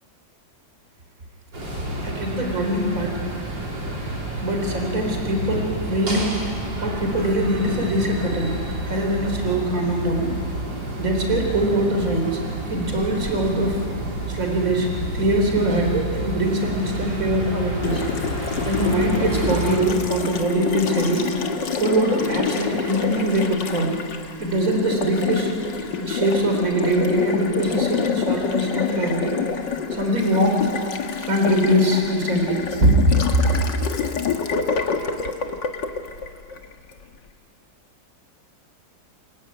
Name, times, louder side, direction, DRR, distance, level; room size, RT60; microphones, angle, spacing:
sound 1, 1.5-19.8, right 1 dB, 75° right, 5.5 m, -29 dB
voice 1, 2.0-3.2 4.4-6.5 6.8-8.6 8.9-10.3 11.0-12.4 12.7-13.9 14.3-18.0 18.7-21.3 21.8-23.9 24.4-25.5 26.0-29.4 29.9-30.7 31.2-32.9, right 1 dB, 45° right, 2 dB, 4.2 m, -22 dB
Water tap faucet, 17.8-37.0, left 6 dB, 70° left, 2.2 m, -28 dB
28.0 x 22.0 x 9.4 m, 2.2 s
omnidirectional pair, 2.0 m